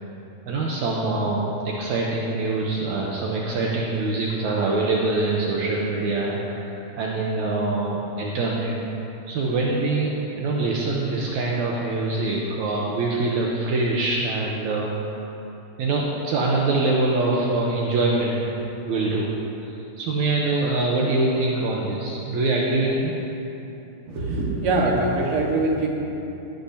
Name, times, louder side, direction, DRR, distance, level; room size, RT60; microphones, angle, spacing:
voice 1, 0.5-8.8 9.3-14.9 15.8-18.6 18.8-19.3 19.6-23.1, right 2 dB, 70° right, -3 dB, 2.2 m, -24 dB
voice 2, 24.1-25.9, right 2 dB, 50° right, -2 dB, 2.2 m, -23 dB
18.5 x 12.0 x 2.8 m, 2.9 s
omnidirectional pair, 3.7 m